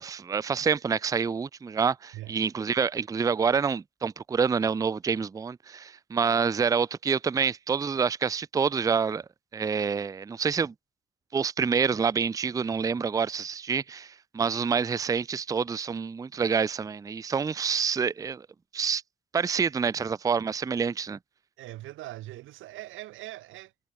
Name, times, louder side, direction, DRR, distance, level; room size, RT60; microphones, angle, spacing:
voice 1, 0.0-9.2 9.5-10.7 11.3-18.5 18.7-19.0 19.3-21.2, right 6 dB, 15° right, 0.4 m, -27 dB
voice 2, 21.6-23.7, right 16 dB, 80° right, 0.6 m, -41 dB
cardioid pair, 90°, 20 cm